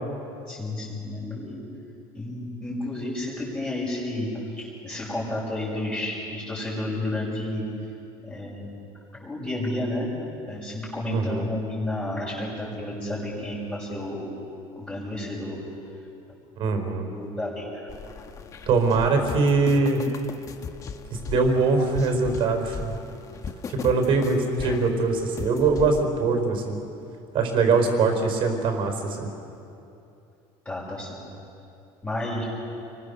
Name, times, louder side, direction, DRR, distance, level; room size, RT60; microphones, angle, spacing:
voice 1, 0.5-1.6 2.1-7.7 8.3-8.7 9.2-10.1 10.5-14.3 14.7-15.6 17.1-17.8 30.6-31.2 32.0-32.4, left 1 dB, 10° left, -7 dB, 6.4 m, -31 dB
voice 2, 11.1-11.4 16.6-17.1 18.7-20.0 21.1-22.9 23.7-26.8 27.3-29.3, right 4 dB, 50° right, 5 dB, 4.7 m, -22 dB
sound 1, 17.9-26.0, left 5 dB, 30° left, 1.1 m, -38 dB
29.0 x 22.5 x 6.8 m, 2.7 s
cardioid pair, 155°, 11 cm